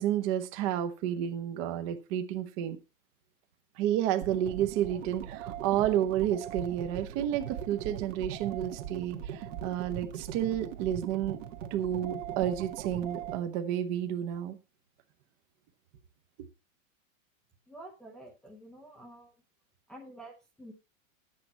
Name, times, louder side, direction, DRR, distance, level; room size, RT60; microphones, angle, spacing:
voice 1, 0.0-2.8 3.8-11.4 11.7-14.6, right 11 dB, 25° right, 0.8 m, -31 dB
sound 1, 4.2-13.4, right 10 dB, 60° right, 1.6 m, -40 dB
voice 2, 17.7-19.4 19.9-20.7, right 1 dB, ahead, 0.6 m, -49 dB
11.5 x 8.6 x 4.2 m
supercardioid pair, 175°, 42 cm